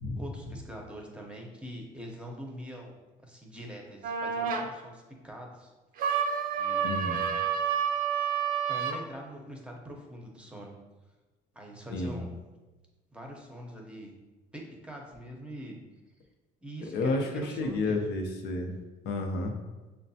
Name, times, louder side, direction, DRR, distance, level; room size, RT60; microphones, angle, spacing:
voice 1, 0.1-5.7 6.5-7.1 8.7-10.7 11.5-12.3 13.1-14.1 14.5-15.8 16.6-18.1, equal, 5° right, 0 dB, 0.8 m, -44 dB
sound 1, 4.0-4.7 6.0-9.0, right 7 dB, 60° right, 0.5 m, -29 dB
voice 2, 6.8-7.2 11.9-12.2 16.9-18.7 19.0-19.5, left 2 dB, 80° left, 3 dB, 0.6 m, -31 dB
6.4 x 2.1 x 2.7 m, 1.2 s
cardioid pair, 110°, 17 cm